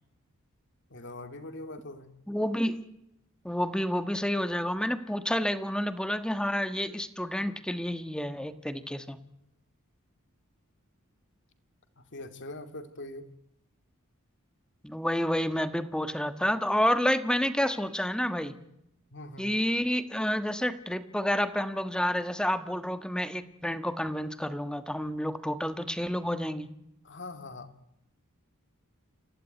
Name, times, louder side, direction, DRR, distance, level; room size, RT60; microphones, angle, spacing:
voice 1, 0.9-2.1 12.0-13.3 19.1-19.5 27.0-27.7, left 2 dB, 55° left, 8 dB, 2.6 m, -42 dB
voice 2, 2.3-2.8 3.4-9.2 14.8-18.5 19.4-26.7, equal, 5° left, 10 dB, 1.4 m, -29 dB
28.5 x 15.5 x 9.3 m, 0.81 s
head